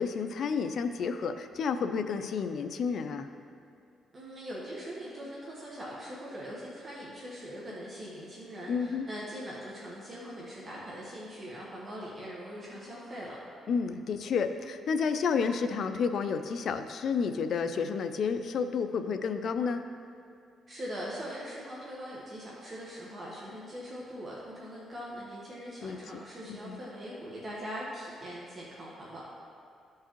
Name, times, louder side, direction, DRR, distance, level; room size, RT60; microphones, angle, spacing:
voice 1, 0.0-3.3 8.7-9.1 13.7-19.8 25.8-26.0 26.7-26.8, left 5 dB, 60° left, 8 dB, 0.5 m, -30 dB
voice 2, 4.1-13.4 20.7-29.2, equal, 35° right, -5 dB, 1.3 m, -41 dB
14.0 x 4.7 x 3.0 m, 2.4 s
cardioid pair, 90°, 0 cm